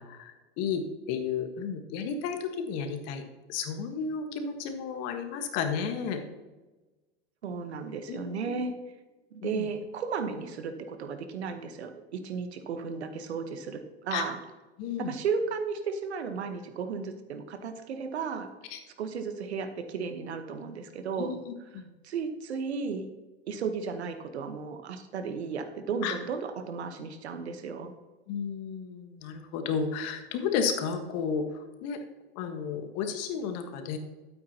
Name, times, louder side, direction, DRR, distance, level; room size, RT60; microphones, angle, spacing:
voice 1, 0.0-3.2 3.5-6.2 8.1-8.5 9.4-9.7 14.1-14.2 14.8-15.1 18.7-18.8 21.1-21.9 26.0-26.1 28.3-32.0 32.3-34.0, left 6 dB, 50° left, 6 dB, 1.5 m, -33 dB
voice 2, 7.4-8.7 9.3-14.4 15.0-18.5 19.0-21.3 21.7-23.1 23.5-27.9, right 5 dB, 85° right, 8 dB, 1.2 m, -34 dB
12.5 x 8.6 x 2.9 m, 1.2 s
hypercardioid pair, 100°, 32 cm